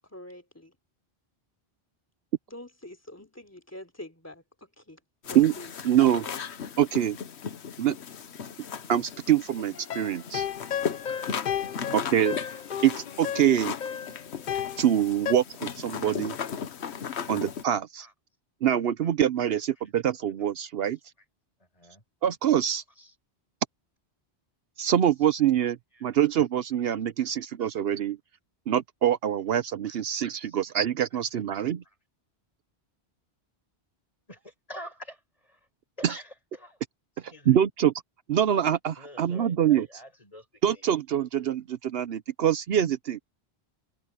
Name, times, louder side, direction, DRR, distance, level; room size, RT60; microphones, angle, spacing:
voice 1, 0.1-0.7 2.5-5.0 5.3-5.7, left 1 dB, 15° left, 3.4 m, -45 dB
sound 1, 5.2-17.6, left 7 dB, 85° left, 1.2 m, -37 dB
voice 2, 5.8-6.3 6.8-7.2 7.8-8.0 8.9-10.5 11.9-12.4 12.8-13.7 14.8-16.4 17.3-18.1 18.6-21.0 22.2-22.8 24.8-28.2 28.7-31.8 36.0-36.1 37.5-37.9 38.3-39.9 40.6-43.2, right 10 dB, 70° right, 0.9 m, -25 dB
sound 2, 9.7-15.3, left 9 dB, 50° left, 0.7 m, -33 dB
voice 3, 21.6-22.0 22.9-23.2 25.1-25.3 25.6-26.1 27.2-27.3 27.6-27.7 29.8-30.0 30.4-30.6 31.3-31.4 31.8-32.0 34.3-35.6 36.0-36.8 37.2-37.7 39.0-40.9, equal, 35° left, 6.2 m, -48 dB
omnidirectional pair, 1.1 m